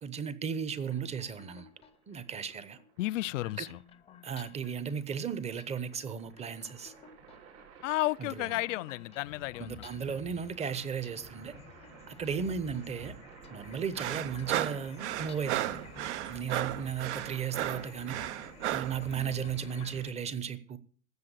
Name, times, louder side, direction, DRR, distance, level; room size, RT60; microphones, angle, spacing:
voice 1, 0.0-1.7 2.1-2.8 3.6-3.7 4.2-6.9 8.2-8.6 9.6-11.5 12.1-13.2 13.5-15.8 16.3-18.2 18.7-20.8, right 7 dB, 15° right, 0.9 m, -35 dB
sound 1, 0.8-20.1, left 8 dB, 15° left, 0.7 m, -52 dB
sound 2, 1.7-20.1, right 6 dB, 70° right, 7.1 m, -55 dB
voice 2, 3.0-3.8 7.8-9.9, left 18 dB, 60° left, 0.5 m, -32 dB
sound 3, 14.0-19.0, right 14 dB, 50° right, 0.8 m, -34 dB
13.5 x 7.7 x 8.1 m
hypercardioid pair, 135°, 44 cm